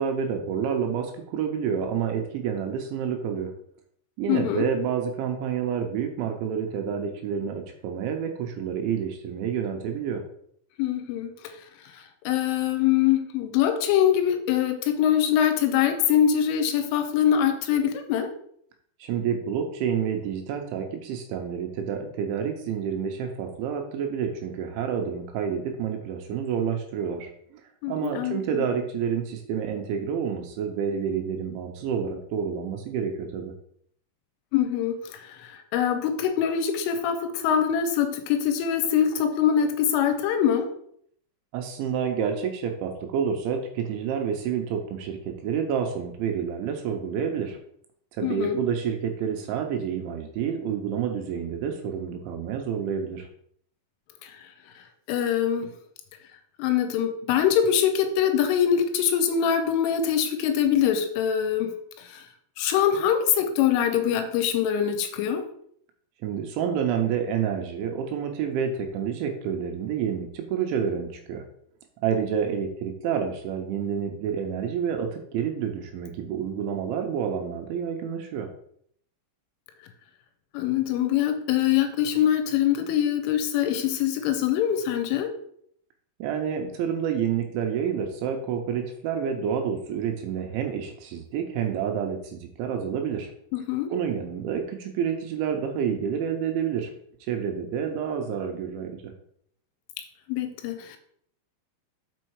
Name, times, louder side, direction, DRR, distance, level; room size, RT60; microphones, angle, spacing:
voice 1, 0.0-3.5 4.2-10.2 19.0-27.6 27.9-33.5 41.5-47.6 48.1-53.3 66.2-71.4 72.0-78.5 86.2-93.3 93.9-96.9 97.3-99.1, right 7 dB, 80° right, 3 dB, 2.9 m, -29 dB
voice 2, 4.3-4.7 10.8-11.3 11.9-18.3 27.8-28.7 34.5-40.7 48.2-48.6 54.2-54.4 55.1-55.7 56.6-62.3 62.6-65.4 80.5-85.3 93.5-93.9 100.3-101.0, left 9 dB, 80° left, 7 dB, 3.1 m, -24 dB
6.4 x 5.5 x 4.6 m, 0.66 s
omnidirectional pair, 5.9 m